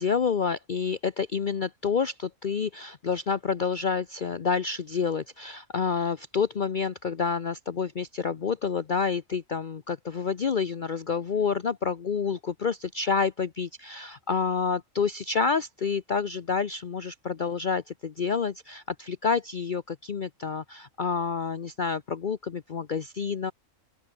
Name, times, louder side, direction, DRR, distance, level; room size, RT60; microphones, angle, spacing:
voice 1, 0.0-23.5, left 5 dB, 40° left, 0.9 m, -28 dB
open air
omnidirectional pair, 1.3 m